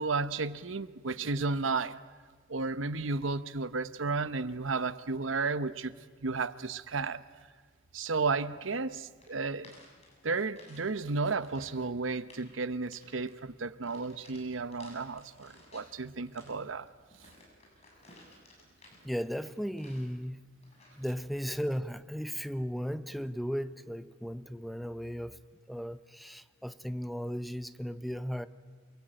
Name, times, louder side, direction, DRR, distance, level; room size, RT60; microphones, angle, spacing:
voice 1, 0.0-2.0 2.5-5.9 6.2-7.2 7.9-9.7 10.2-16.9, right 4 dB, 85° right, 1.0 m, -33 dB
sound 1, 9.2-10.8 11.1-11.8 12.1-12.5 12.9-13.4 13.8-15.9 16.3-20.2 20.6-21.1, left 2 dB, 35° left, 7.7 m, -57 dB
voice 2, 19.0-20.4 21.0-25.4 25.7-28.5, equal, ahead, 0.8 m, -36 dB
28.5 x 22.0 x 9.0 m
head